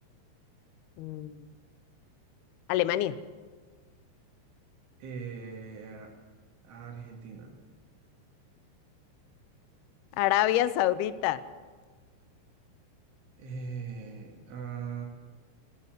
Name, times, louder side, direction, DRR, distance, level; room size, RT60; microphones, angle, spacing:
voice 1, 1.0-1.3 2.7-3.2 10.2-11.4, left 13 dB, 80° left, 15 dB, 2.3 m, -26 dB
voice 2, 5.0-6.1 6.6-7.6 13.4-15.1, right 6 dB, 80° right, 0 dB, 4.8 m, -40 dB
19.5 x 17.0 x 7.9 m, 1.5 s
omnidirectional pair, 5.4 m